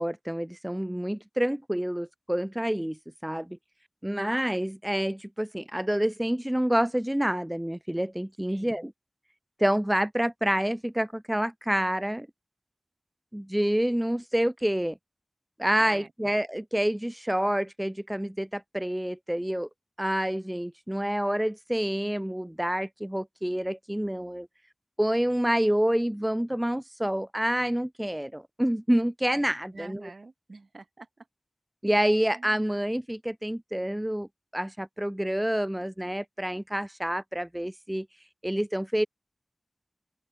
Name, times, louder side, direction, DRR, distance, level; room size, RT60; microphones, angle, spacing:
voice 1, 0.0-3.6 4.0-8.9 9.6-12.3 13.3-15.0 15.6-19.7 20.0-24.5 25.0-30.1 31.8-38.1 38.4-39.1, equal, 10° right, 0.5 m, -28 dB
voice 2, 8.5-8.9 15.8-16.1 29.7-31.3 32.3-32.7, right 3 dB, 65° right, 5.2 m, -46 dB
open air
wide cardioid pair, 50°, 0 cm